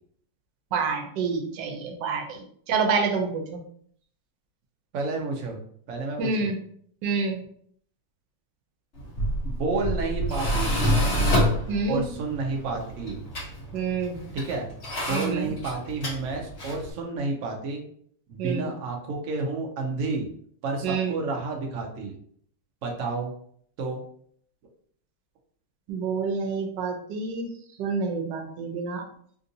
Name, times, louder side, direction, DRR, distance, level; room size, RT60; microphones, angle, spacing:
voice 1, 0.7-3.6 6.2-6.6 7.0-7.4 11.7-12.0 13.7-14.2 15.1-15.5 18.4-18.7 20.8-21.2 25.9-27.5 27.8-29.0, right 4 dB, 85° right, 4 dB, 1.3 m, -28 dB
voice 2, 4.9-5.6 5.9-6.5 9.6-11.2 11.9-13.2 14.3-14.7 15.1-17.8 18.3-20.3 20.6-22.1 22.8-23.3 23.8-24.0, right 3 dB, 60° right, 2 dB, 0.9 m, -30 dB
Tools, 9.0-16.9, equal, 45° left, 1.2 m, -28 dB
3.5 x 2.6 x 2.7 m, 0.62 s
omnidirectional pair, 1.9 m